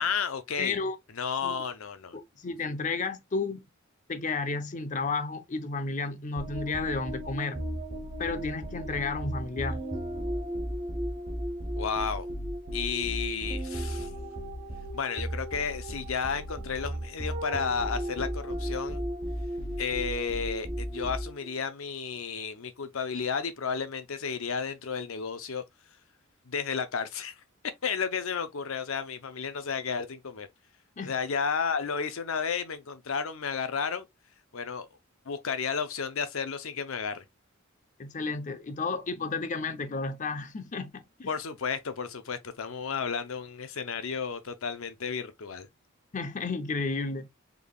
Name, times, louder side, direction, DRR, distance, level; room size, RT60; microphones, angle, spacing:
voice 1, 0.0-0.8 1.1-2.2 11.8-12.3 12.7-14.1 14.9-19.0 19.8-25.6 26.5-27.3 27.8-30.5 31.0-34.1 34.5-34.9 35.3-37.2 41.3-45.7, left 6 dB, 80° left, 0.7 m, -32 dB
voice 2, 0.6-1.0 1.4-1.5 2.1-3.6 4.1-7.6 8.2-9.8 31.0-31.1 38.0-41.3 46.1-47.3, left 3 dB, 35° left, 0.6 m, -32 dB
sound 1, 6.4-21.5, equal, 35° right, 0.8 m, -35 dB
3.8 x 3.4 x 2.3 m
head